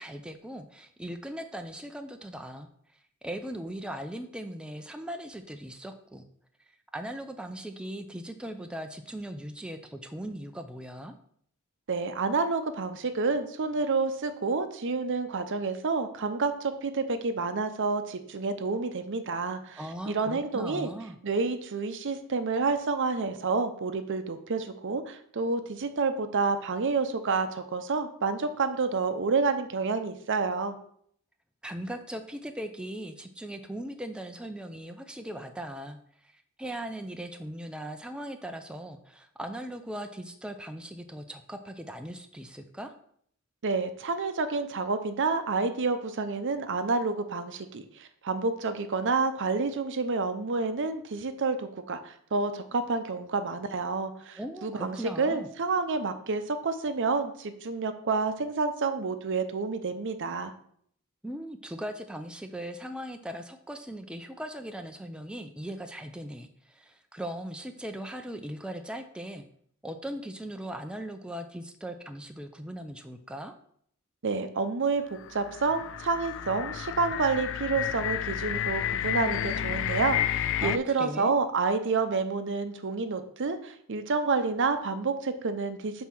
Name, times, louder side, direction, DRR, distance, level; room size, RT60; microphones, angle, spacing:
voice 1, 0.0-2.7 3.2-6.2 6.9-11.1 19.8-21.2 31.6-42.9 54.4-55.5 61.2-69.4 69.8-73.5 80.6-81.3, right 1 dB, 5° right, 6 dB, 0.4 m, -39 dB
voice 2, 11.9-19.8 20.1-20.9 21.2-30.8 43.6-60.5 74.2-86.1, right 4 dB, 60° right, 10 dB, 0.7 m, -29 dB
sound 1, 75.1-80.8, left 10 dB, 60° left, 0.4 m, -31 dB
5.5 x 4.3 x 6.0 m, 0.65 s
head